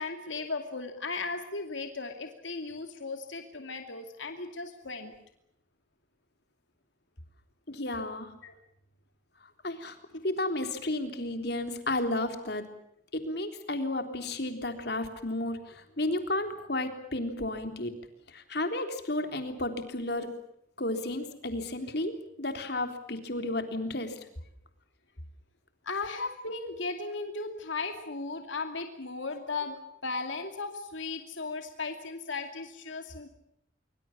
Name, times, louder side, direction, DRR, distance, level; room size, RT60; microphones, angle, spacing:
voice 1, 0.0-5.1 8.4-8.5 25.8-33.4, left 3 dB, 75° left, 5 dB, 2.6 m, -36 dB
voice 2, 7.7-8.3 9.6-12.6 13.1-17.9 18.3-20.3 20.8-24.1, left 1 dB, 55° left, 7 dB, 3.6 m, -32 dB
25.0 x 24.5 x 7.4 m, 0.77 s
head